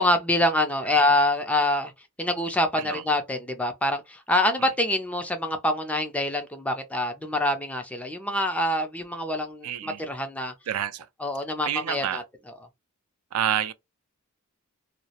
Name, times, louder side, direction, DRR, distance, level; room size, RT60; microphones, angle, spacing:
voice 1, 0.0-1.9 2.2-10.5 11.2-12.2, left 1 dB, 5° left, 0.3 m, -25 dB
voice 2, 9.6-10.0 10.7-11.1 11.6-12.2 13.3-13.7, right 10 dB, 80° right, 0.4 m, -29 dB
2.3 x 2.0 x 2.7 m
head